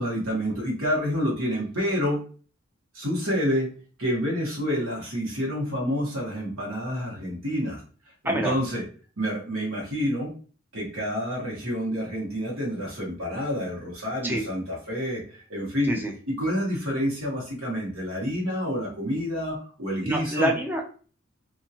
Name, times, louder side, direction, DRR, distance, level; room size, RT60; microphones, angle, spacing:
voice 1, 0.0-2.2 2.9-3.7 4.0-7.8 8.2-8.8 9.2-10.3 10.7-16.0 16.3-20.5, equal, 90° right, -3 dB, 1.3 m, -28 dB
voice 2, 20.0-20.9, equal, 10° right, 2 dB, 0.4 m, -26 dB
2.7 x 2.5 x 2.8 m, 0.40 s
head